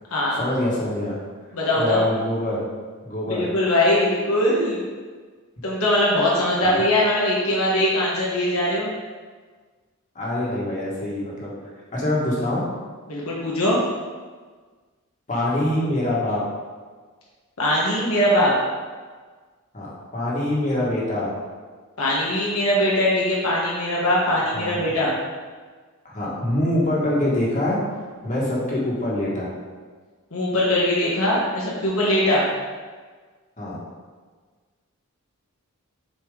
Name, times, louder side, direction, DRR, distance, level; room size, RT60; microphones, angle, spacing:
voice 1, 0.4-1.2 1.7-2.6 3.0-3.5 6.6-6.8 10.1-11.5 11.9-12.6 15.3-16.4 19.7-19.9 20.1-21.3 24.5-24.9 26.0-27.8 28.2-29.5 33.6-33.8, left 1 dB, 35° left, -5 dB, 1.7 m, -24 dB
voice 2, 1.5-2.0 3.3-4.8 5.6-8.9 13.1-13.8 17.6-18.5 22.0-25.2 30.3-32.5, left 1 dB, 80° left, -5 dB, 1.3 m, -21 dB
6.9 x 4.9 x 3.8 m, 1.5 s
head